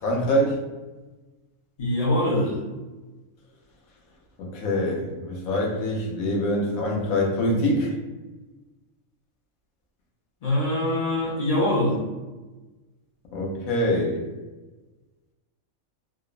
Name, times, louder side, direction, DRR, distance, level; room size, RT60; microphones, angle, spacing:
voice 1, 0.0-0.6 4.4-7.9 13.3-14.3, left 1 dB, 85° left, -1 dB, 1.1 m, -24 dB
voice 2, 1.8-2.6 10.4-12.0, left 1 dB, 55° left, -4 dB, 0.4 m, -23 dB
2.9 x 2.0 x 2.4 m, 1.2 s
omnidirectional pair, 1.4 m